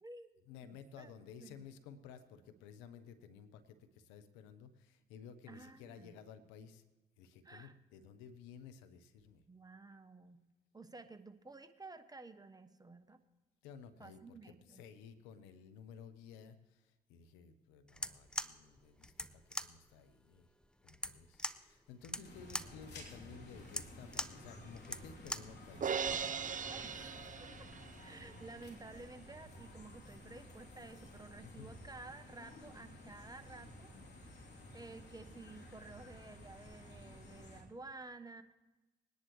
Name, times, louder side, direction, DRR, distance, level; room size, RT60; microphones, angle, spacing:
voice 1, 0.5-6.8 7.2-9.4 13.6-20.5 20.8-26.0 31.4-31.8, left 7 dB, 85° left, 11 dB, 0.9 m, -55 dB
voice 2, 5.5-6.1 7.4-7.7 9.5-10.4 10.7-13.2 14.0-14.8 22.2-22.3 26.7-27.7 28.0-38.4, right 3 dB, 20° right, 9 dB, 1.1 m, -53 dB
sound 1, 17.9-25.6, left 1 dB, 5° left, 0.7 m, -43 dB
sound 2, 22.2-37.6, left 1 dB, 60° left, 3.1 m, -54 dB
Crash cymbal, 25.8-28.1, right 7 dB, 45° right, 0.7 m, -38 dB
21.0 x 10.5 x 3.1 m, 1.1 s
hypercardioid pair, 45°, 19 cm